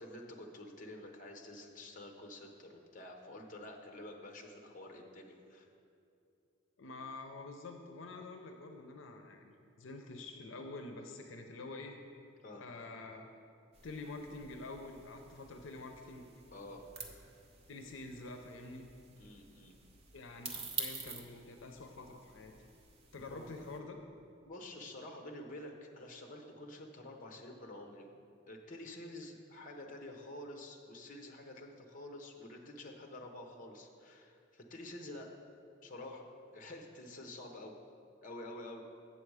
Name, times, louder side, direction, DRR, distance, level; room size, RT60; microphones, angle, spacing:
voice 1, 0.0-5.7 12.4-12.7 16.5-16.8 19.2-19.8 23.3-23.5 24.4-28.1 28.5-35.3 35.8-37.7 38.2-38.8, left 1 dB, 40° left, 2 dB, 0.8 m, -49 dB
voice 2, 6.8-12.0 12.6-13.2 13.8-16.3 17.7-18.9 20.1-22.5 23.1-24.0, left 3 dB, 80° left, 4 dB, 0.6 m, -47 dB
sound 1, 13.7-23.8, right 4 dB, 30° right, 0.8 m, -49 dB
7.7 x 7.1 x 4.8 m, 2.5 s
head